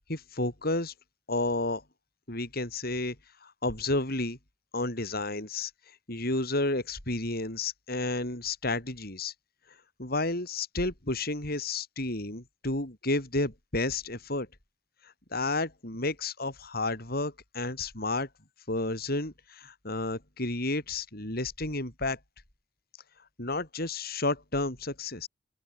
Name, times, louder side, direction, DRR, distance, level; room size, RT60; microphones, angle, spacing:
voice 1, 0.1-0.9 1.3-1.8 2.3-3.2 3.4-4.4 4.7-5.7 6.1-9.3 10.0-14.5 15.3-18.3 18.7-22.2 23.4-25.3, left 2 dB, 55° left, 6.2 m, -31 dB
open air
head